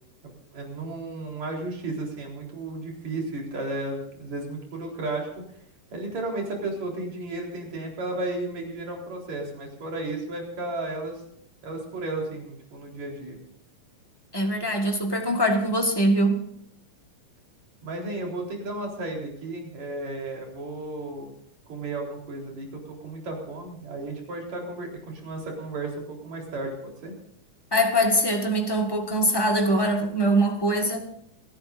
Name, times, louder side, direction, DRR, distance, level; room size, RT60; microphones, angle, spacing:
voice 1, 0.5-5.5 5.9-11.2 11.6-13.4 17.8-21.3 21.7-27.1, right 2 dB, 55° right, 0 dB, 5.3 m, -33 dB
voice 2, 14.3-16.4 27.7-31.0, right 1 dB, 20° left, 3 dB, 0.6 m, -23 dB
28.0 x 14.0 x 2.6 m, 0.71 s
omnidirectional pair, 3.7 m